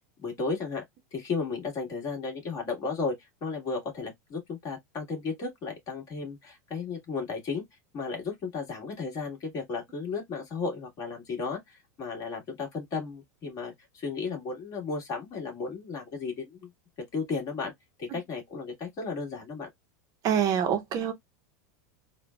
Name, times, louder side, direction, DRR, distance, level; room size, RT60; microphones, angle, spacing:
voice 1, 0.2-0.8 1.1-7.6 7.9-16.7 17.1-17.7 18.0-19.7, left 4 dB, 40° left, 1.8 m, -34 dB
voice 2, 20.2-21.1, right 8 dB, 40° right, 0.7 m, -25 dB
3.6 x 2.2 x 2.2 m
supercardioid pair, 120°, 9 cm